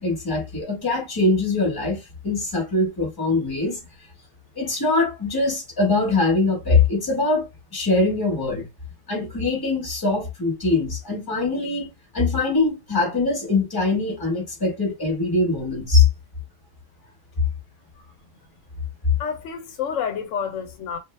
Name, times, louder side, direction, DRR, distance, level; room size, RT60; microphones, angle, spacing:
voice 1, 0.0-3.8 4.6-8.7 9.1-11.9 12.1-16.1, left 3 dB, 20° left, 1.1 m, -22 dB
voice 2, 19.2-21.0, left 7 dB, 80° left, 0.9 m, -29 dB
2.3 x 2.0 x 3.1 m
omnidirectional pair, 1.3 m